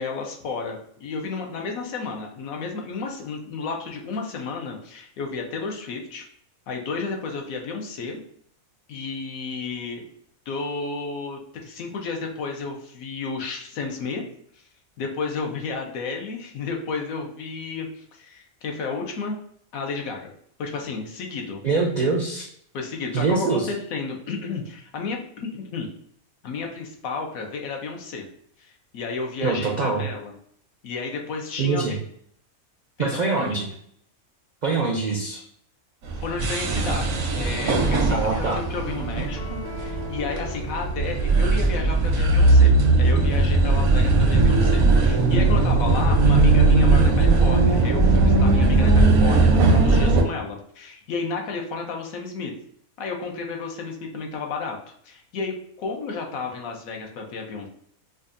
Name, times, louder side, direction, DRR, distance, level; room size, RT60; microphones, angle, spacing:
voice 1, 0.0-6.2 6.7-8.2 8.9-10.0 10.5-14.2 15.0-19.4 19.7-20.3 20.6-21.6 22.7-25.9 26.4-28.3 28.6-30.3 30.8-32.0 33.0-33.6 36.2-52.5 53.0-54.8 55.0-57.7, left 4 dB, 75° left, 2 dB, 1.1 m, -32 dB
voice 2, 21.6-22.5 23.1-23.7 29.4-30.0 31.6-32.0 33.0-33.7 34.6-35.4 38.1-38.6, right 4 dB, 60° right, -1 dB, 0.4 m, -24 dB
sound 1, 36.0-50.2, right 3 dB, 80° right, 1.1 m, -18 dB
sound 2, 38.8-42.1, left 2 dB, 50° left, 0.9 m, -39 dB
5.2 x 2.3 x 2.5 m, 0.66 s
omnidirectional pair, 1.5 m